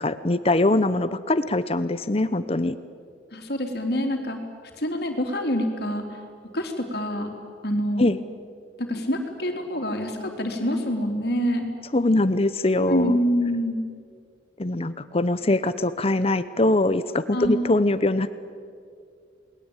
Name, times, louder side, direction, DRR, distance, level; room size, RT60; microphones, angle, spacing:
voice 1, 0.0-2.8 8.0-8.2 11.9-13.2 14.6-18.3, left 2 dB, 30° left, 13 dB, 0.8 m, -22 dB
voice 2, 3.3-4.4 4.8-6.2 6.5-7.3 7.6-8.1 8.8-11.7 12.9-13.8 17.3-17.6, equal, 55° left, 3 dB, 3.8 m, -26 dB
29.0 x 21.0 x 9.0 m, 2.2 s
head